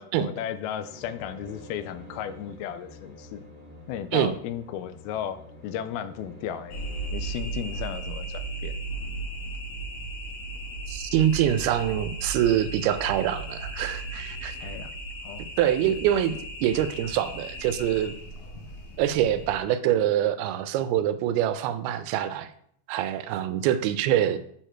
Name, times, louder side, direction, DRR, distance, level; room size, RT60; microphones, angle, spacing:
voice 1, 0.0-3.4 3.9-6.8 7.1-8.8 14.6-14.9 15.2-15.5 15.9-16.0, left 10 dB, 85° left, 12 dB, 2.4 m, -35 dB
sound 1, 0.8-7.1, left 1 dB, 15° left, 3.1 m, -47 dB
sound 2, 6.7-19.6, right 2 dB, 55° left, 3.4 m, -36 dB
voice 2, 10.9-14.7 15.6-16.3 16.6-18.2 19.0-22.5 22.9-24.4, right 11 dB, 85° right, 12 dB, 2.6 m, -25 dB
7.9 x 6.5 x 4.4 m, 0.67 s
omnidirectional pair, 4.4 m